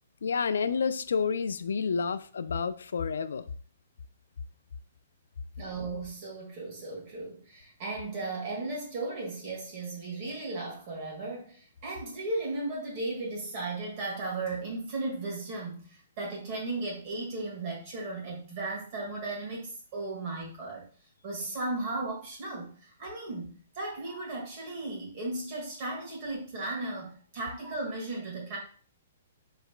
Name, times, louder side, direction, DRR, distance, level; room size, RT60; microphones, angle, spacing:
voice 1, 0.2-3.5, left 5 dB, 90° left, 13 dB, 0.3 m, -29 dB
voice 2, 5.6-20.9 21.2-28.6, right 2 dB, 35° right, -2 dB, 1.6 m, -36 dB
4.9 x 3.2 x 2.4 m, 0.42 s
hypercardioid pair, 165°, 0 cm